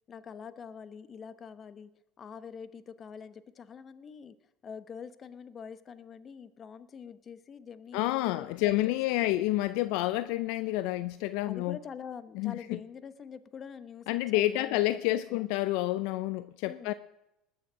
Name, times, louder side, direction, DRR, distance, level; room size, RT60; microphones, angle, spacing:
voice 1, 0.1-1.9 2.2-4.4 4.6-9.4 11.5-15.5 16.6-16.9, left 7 dB, 40° left, 14 dB, 1.0 m, -45 dB
voice 2, 7.9-11.8 12.4-12.8 14.1-16.9, left 16 dB, 70° left, 14 dB, 0.5 m, -29 dB
20.0 x 7.3 x 6.3 m, 0.87 s
hypercardioid pair, 75°, 0 cm